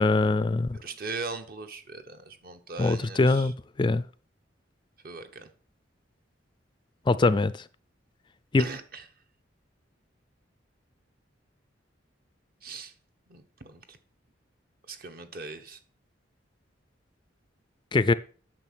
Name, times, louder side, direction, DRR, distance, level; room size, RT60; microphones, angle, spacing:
voice 1, 0.0-0.8 2.8-3.5 3.8-4.0 7.1-7.5 8.5-8.6 17.9-18.1, left 3 dB, 25° left, 0.4 m, -22 dB
voice 2, 0.8-3.5 5.0-5.5 8.6-9.0 12.6-12.9 13.3-14.0 14.9-15.8, right 4 dB, 50° right, 1.1 m, -39 dB
9.0 x 6.6 x 6.1 m
head